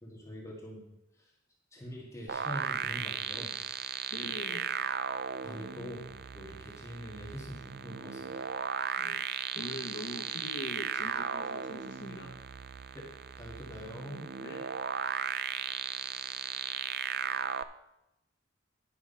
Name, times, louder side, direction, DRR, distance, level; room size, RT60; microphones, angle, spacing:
voice 1, 0.0-0.8 1.7-3.5 5.4-6.1 6.3-8.5 12.9-13.1 13.4-14.3, equal, 15° left, -4 dB, 1.9 m, -44 dB
sound 1, 2.3-17.6, right 8 dB, 55° right, 0.4 m, -36 dB
voice 2, 4.1-4.6 9.0-12.3 14.4-14.6, left 1 dB, 70° left, -1 dB, 1.0 m, -43 dB
10.5 x 6.2 x 5.5 m, 0.89 s
head